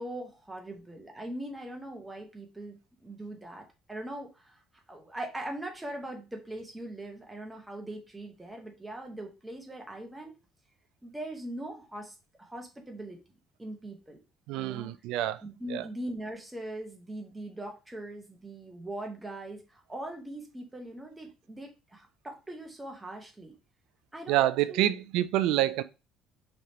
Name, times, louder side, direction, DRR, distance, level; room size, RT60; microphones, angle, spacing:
voice 1, 0.0-4.6 4.9-10.3 11.0-13.2 13.6-14.2 14.6-14.9 15.4-23.5 24.1-25.0, right 1 dB, 10° right, 1.0 m, -41 dB
voice 2, 14.5-15.4 15.7-15.8 24.3-25.8, right 13 dB, 80° right, 0.4 m, -27 dB
4.8 x 3.3 x 2.8 m
cardioid pair, 165°, 0 cm